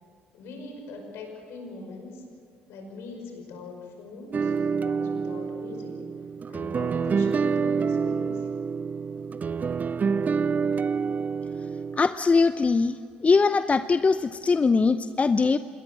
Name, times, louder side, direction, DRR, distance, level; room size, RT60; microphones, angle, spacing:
voice 1, 0.3-2.3 2.7-6.0 6.5-8.5, left 3 dB, 65° left, 4 dB, 5.6 m, -41 dB
sound 1, 4.3-12.0, right 5 dB, 35° right, 0.6 m, -27 dB
voice 2, 12.0-13.0 13.2-15.6, left 4 dB, 30° left, 13 dB, 0.7 m, -21 dB
26.5 x 22.0 x 7.5 m, 2.2 s
figure-of-eight pair, 50°, 5 cm